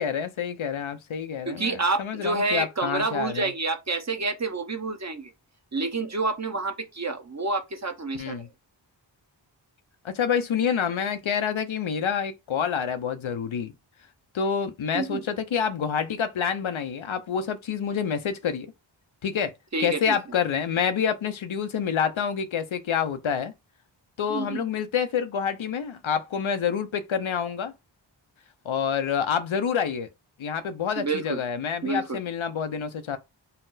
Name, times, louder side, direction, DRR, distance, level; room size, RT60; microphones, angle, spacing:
voice 1, 0.0-3.5 8.1-8.5 10.0-13.7 14.3-18.7 19.2-19.5 19.8-23.5 24.2-27.7 28.6-30.1 30.4-33.2, left 7 dB, 85° left, 0.7 m, -27 dB
voice 2, 1.5-5.3 5.7-8.5 14.9-15.2 19.7-20.2 24.3-24.7 31.0-31.4 31.8-32.2, right 3 dB, 35° right, 0.8 m, -28 dB
4.2 x 2.0 x 3.9 m
wide cardioid pair, 45°, 46 cm